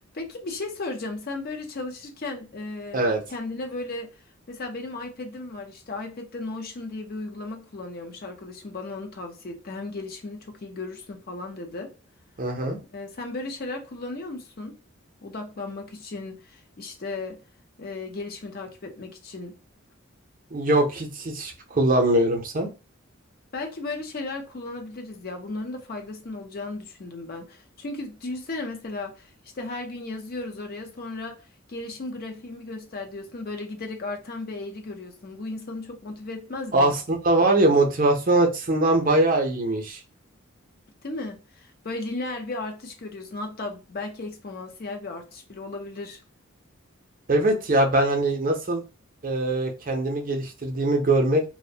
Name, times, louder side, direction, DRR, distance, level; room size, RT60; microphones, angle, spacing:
voice 1, 0.1-4.2 4.5-11.9 12.9-14.8 15.2-17.4 17.8-19.6 23.5-31.4 31.7-36.9 41.0-46.2, left 2 dB, 45° left, 0.5 m, -35 dB
voice 2, 12.4-12.8 20.5-22.7 36.7-40.0 47.3-48.8 49.2-51.4, right 2 dB, 40° right, 0.6 m, -22 dB
2.5 x 2.1 x 2.6 m
head